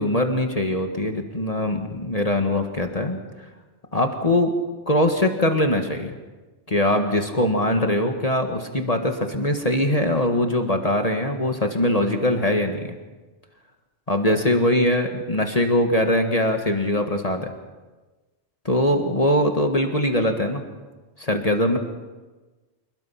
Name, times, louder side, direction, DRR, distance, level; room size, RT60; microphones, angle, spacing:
voice 1, 0.0-3.2 3.9-4.5 4.9-6.1 6.7-12.9 14.1-17.5 18.6-20.6 21.2-21.8, left 1 dB, 30° left, 4 dB, 1.8 m, -22 dB
27.5 x 21.0 x 5.9 m, 1.2 s
omnidirectional pair, 1.2 m